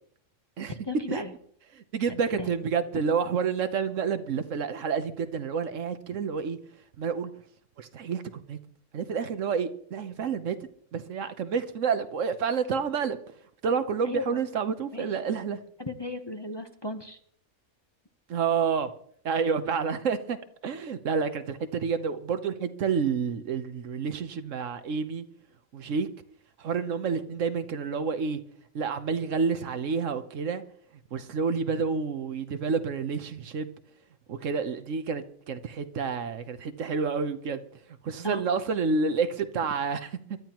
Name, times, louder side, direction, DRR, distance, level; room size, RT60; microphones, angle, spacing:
voice 1, 0.7-1.3 2.4-2.5 14.0-14.4 14.9-15.1 15.8-17.2 38.2-38.4, left 2 dB, 20° left, 0.9 m, -35 dB
voice 2, 1.7-6.6 7.0-7.3 7.8-8.6 8.9-10.6 10.9-13.2 13.6-15.6 18.3-18.9 19.2-20.4 20.6-25.2 25.7-26.1 26.6-28.4 28.7-30.6 31.1-33.7 34.3-37.6 38.0-40.1, right 5 dB, 70° right, 1.2 m, -29 dB
24.5 x 12.0 x 3.0 m
omnidirectional pair, 1.4 m